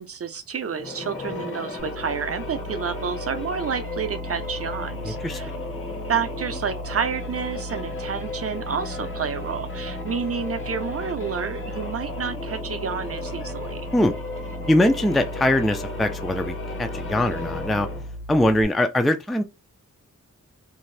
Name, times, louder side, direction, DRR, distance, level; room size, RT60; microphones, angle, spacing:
voice 1, 0.0-5.5 6.1-13.8, right 6 dB, 50° right, 0.5 m, -30 dB
sound 1, 0.7-18.2, left 3 dB, 40° left, 0.9 m, -35 dB
sound 2, 1.8-18.6, equal, 85° left, 1.1 m, -37 dB
voice 2, 5.0-5.5 13.9-14.1 14.7-17.9 18.3-19.4, left 1 dB, ahead, 0.3 m, -22 dB
2.7 x 2.4 x 3.2 m
wide cardioid pair, 75°, 31 cm